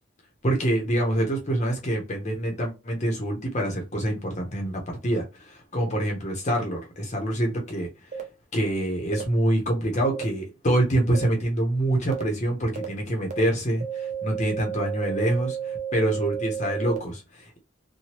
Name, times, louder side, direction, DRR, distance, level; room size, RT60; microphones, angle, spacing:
voice 1, 0.4-7.9 8.5-17.6, right 1 dB, 35° left, 0.7 m, -26 dB
sound 1, 8.1-8.2 9.1-9.2 10.1-10.2 11.1-11.2 12.1-12.2 12.8-12.9 13.3-13.4 13.8-17.0, right 8 dB, 35° right, 0.6 m, -32 dB
2.9 x 2.2 x 3.0 m
head